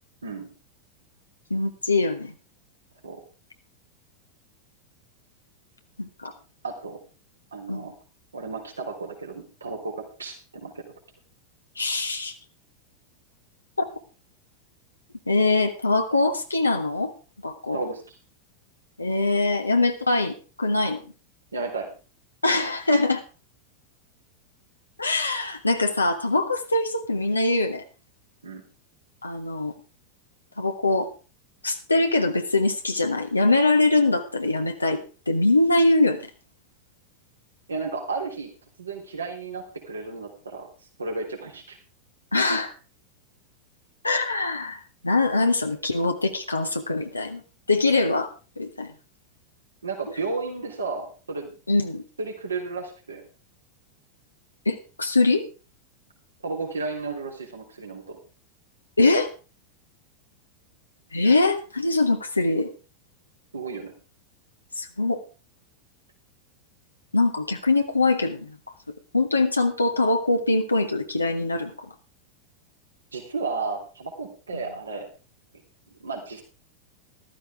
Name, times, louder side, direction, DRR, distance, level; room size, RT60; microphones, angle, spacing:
voice 1, 1.5-2.3 6.0-6.3 7.7-7.9 11.8-12.3 15.3-17.1 17.4-17.8 19.0-21.0 22.4-23.2 25.0-27.8 29.2-29.7 30.6-31.1 31.6-36.2 42.3-42.7 44.0-47.4 47.7-48.9 51.7-52.0 54.6-55.4 59.0-59.3 61.1-62.7 64.7-65.2 67.1-68.6 69.1-71.9, left 2 dB, 80° left, 4 dB, 1.2 m, -23 dB
voice 2, 6.6-7.0 7.5-7.9 8.3-10.8 17.7-18.2 21.5-21.9 28.4-28.6 37.7-38.5 38.8-40.7 41.0-41.8 49.8-51.5 52.2-53.2 56.4-58.2 63.5-63.9 73.1-75.1 75.9-76.4, right 4 dB, 75° right, 1 dB, 3.2 m, -33 dB
14.0 x 13.0 x 3.5 m, 0.33 s
figure-of-eight pair, 90°, 0 cm